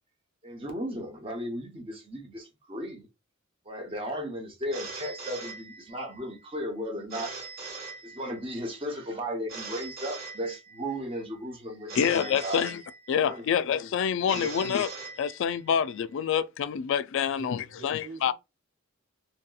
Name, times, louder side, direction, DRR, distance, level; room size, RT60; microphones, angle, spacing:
voice 1, 0.4-3.1 3.7-7.4 8.0-12.6 13.2-13.4 14.3-14.5, equal, 25° right, 0.8 m, -35 dB
Telephone, 4.7-6.2 7.1-8.6 9.5-11.0 11.9-13.4 14.3-15.8, right 4 dB, 50° right, 1.4 m, -41 dB
voice 2, 12.0-12.8 13.1-14.9 15.2-18.3, left 8 dB, 65° left, 0.3 m, -27 dB
voice 3, 17.4-18.3, right 3 dB, 85° right, 1.1 m, -45 dB
2.8 x 2.7 x 2.3 m
head